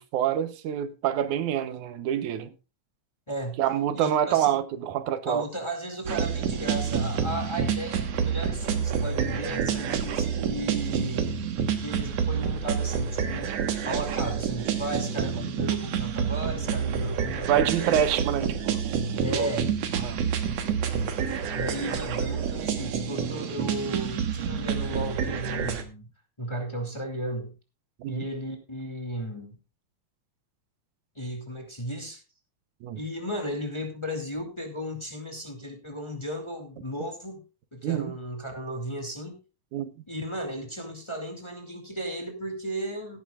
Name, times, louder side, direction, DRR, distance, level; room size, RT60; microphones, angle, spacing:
voice 1, 0.0-2.5 3.6-5.4 15.4-15.5 17.5-18.8 19.3-19.5 20.0-20.2 28.0-28.2 32.8-33.0 37.8-38.1 39.7-39.9, right 10 dB, 90° right, 2.4 m, -26 dB
voice 2, 3.3-3.6 3.9-4.6 5.3-11.3 11.8-13.5 13.8-18.0 18.4-18.5 19.2-19.7 21.3-26.1 26.4-27.5 28.1-29.6 31.1-32.2 32.9-37.4 37.7-39.4 40.1-43.2, right 1 dB, 10° left, 2.1 m, -35 dB
sound 1, 6.0-25.8, right 7 dB, 65° right, 2.4 m, -28 dB
17.0 x 10.5 x 2.4 m
omnidirectional pair, 3.3 m